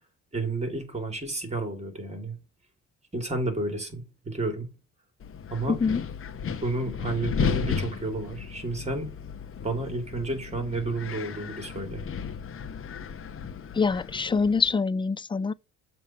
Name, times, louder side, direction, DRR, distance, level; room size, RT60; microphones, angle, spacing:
voice 1, 0.3-2.3 3.1-4.7 5.5-5.8 6.6-9.1 9.6-12.0, right 2 dB, 20° right, 2.9 m, -31 dB
Wind, 5.2-14.7, left 6 dB, 45° left, 0.9 m, -34 dB
voice 2, 5.7-6.0 13.7-15.5, left 4 dB, 15° left, 0.3 m, -25 dB
7.3 x 3.1 x 5.8 m
cardioid pair, 90°, 30 cm